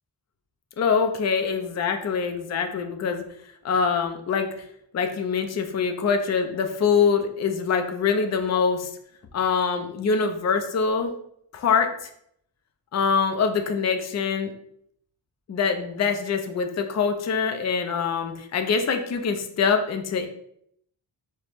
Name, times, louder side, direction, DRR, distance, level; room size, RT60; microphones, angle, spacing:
voice 1, 0.8-3.2 3.6-4.5 4.9-8.9 9.3-11.1 11.5-11.9 12.9-14.5 15.5-20.3, left 5 dB, 35° left, 6 dB, 0.4 m, -24 dB
4.7 x 2.1 x 2.9 m, 0.70 s
wide cardioid pair, 80°, 49 cm